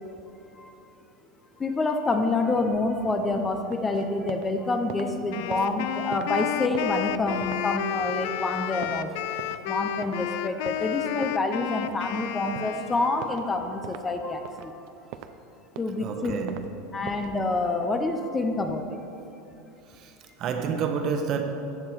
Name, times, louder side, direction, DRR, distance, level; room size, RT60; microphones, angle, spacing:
voice 1, 1.6-14.8 15.8-16.4 16.9-19.0, left 2 dB, 15° left, 0.6 m, -27 dB
sound 1, 3.7-4.5 4.8-9.7 10.0-10.2 10.6-12.2 12.5-12.8 13.2-13.5 13.8-14.1 14.4-15.4 15.7-16.7 17.0-17.4, right 11 dB, 55° right, 0.6 m, -42 dB
Wind instrument woodwind instrument, 5.3-13.5, left 11 dB, 65° left, 0.4 m, -32 dB
voice 2, 16.0-17.0 19.9-21.4, right 6 dB, 40° right, 1.1 m, -30 dB
14.5 x 8.0 x 4.7 m
supercardioid pair, 150°, 0 cm